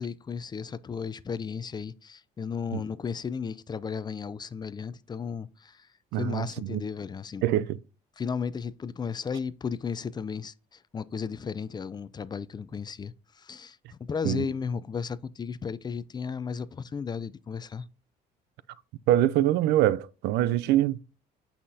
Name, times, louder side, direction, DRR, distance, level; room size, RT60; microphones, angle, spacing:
voice 1, 0.0-5.9 6.2-7.4 8.2-17.9, left 6 dB, 25° left, 0.4 m, -34 dB
voice 2, 6.1-6.8 7.4-7.8 14.2-14.5 19.1-21.0, right 13 dB, 85° right, 0.5 m, -24 dB
8.5 x 5.7 x 2.7 m
cardioid pair, 110°, 17 cm